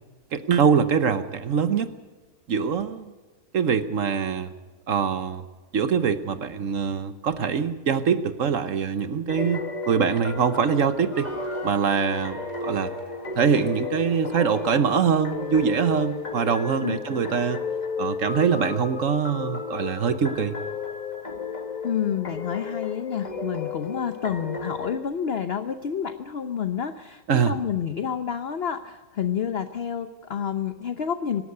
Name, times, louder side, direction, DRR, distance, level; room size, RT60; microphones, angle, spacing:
voice 1, 0.3-1.9 2.5-3.1 3.5-4.5 4.9-5.4 5.7-11.3 11.6-12.9 13.4-17.6 18.0-20.6 27.3-27.6, right 6 dB, 55° right, 12 dB, 1.2 m, -23 dB
sound 1, 9.3-25.0, left 4 dB, 30° left, 1.2 m, -33 dB
sound 2, 11.1-17.5, left 1 dB, 75° left, 4.1 m, -47 dB
voice 2, 21.8-31.4, left 8 dB, 50° left, 10 dB, 0.8 m, -29 dB
24.0 x 12.5 x 9.5 m, 1.3 s
omnidirectional pair, 1.8 m